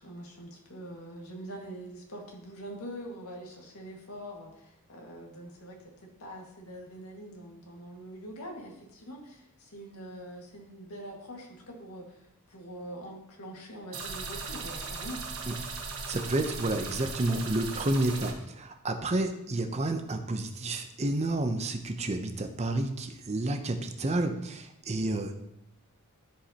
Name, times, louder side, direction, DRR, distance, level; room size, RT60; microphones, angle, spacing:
voice 1, 0.0-15.2, right 1 dB, 75° left, 0 dB, 1.9 m, -44 dB
sound 1, 13.9-18.3, right 4 dB, 65° right, 1.3 m, -38 dB
voice 2, 16.1-25.4, right 2 dB, 30° right, 6 dB, 0.6 m, -30 dB
13.0 x 5.1 x 2.9 m, 0.81 s
head